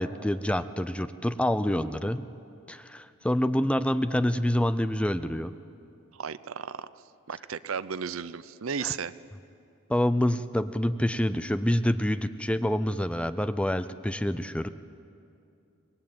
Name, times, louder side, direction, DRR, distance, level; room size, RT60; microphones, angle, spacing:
voice 1, 0.0-2.2 2.7-5.5 8.8-9.0 9.9-14.7, left 1 dB, 5° left, 12 dB, 0.5 m, -27 dB
voice 2, 6.1-6.9 7.3-9.1, right 6 dB, 65° right, 15 dB, 0.6 m, -34 dB
25.5 x 20.5 x 8.8 m, 2.7 s
head